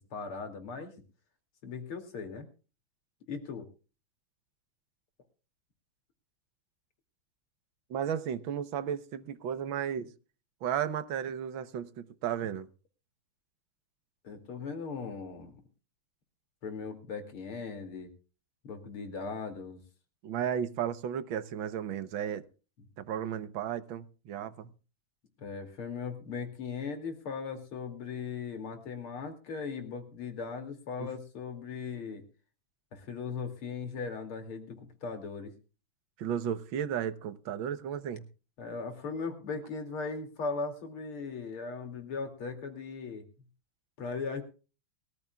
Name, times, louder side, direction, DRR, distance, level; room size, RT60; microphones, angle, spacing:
voice 1, 0.1-0.9 1.6-2.5 3.3-3.7 14.2-15.6 16.6-18.1 18.6-19.8 25.4-32.2 32.9-35.5 38.6-43.2 44.0-44.4, left 5 dB, 80° left, 3.4 m, -38 dB
voice 2, 7.9-10.1 10.6-12.7 20.2-22.4 23.0-24.7 31.0-31.1 36.2-38.2, right 9 dB, 70° right, 1.7 m, -34 dB
22.5 x 14.0 x 2.3 m
omnidirectional pair, 2.3 m